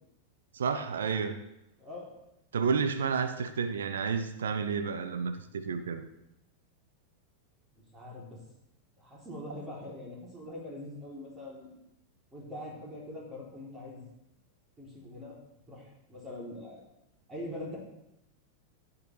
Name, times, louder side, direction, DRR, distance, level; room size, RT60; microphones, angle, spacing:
voice 1, 0.5-1.4 2.5-6.0, right 6 dB, 65° right, 8 dB, 0.9 m, -31 dB
voice 2, 1.8-2.1 7.7-8.4 9.0-11.7 12.3-14.0 14.8-15.4 15.7-16.9 17.3-17.8, left 1 dB, 15° right, -4 dB, 3.5 m, -43 dB
15.0 x 8.6 x 3.4 m, 0.86 s
figure-of-eight pair, 90°, 0 cm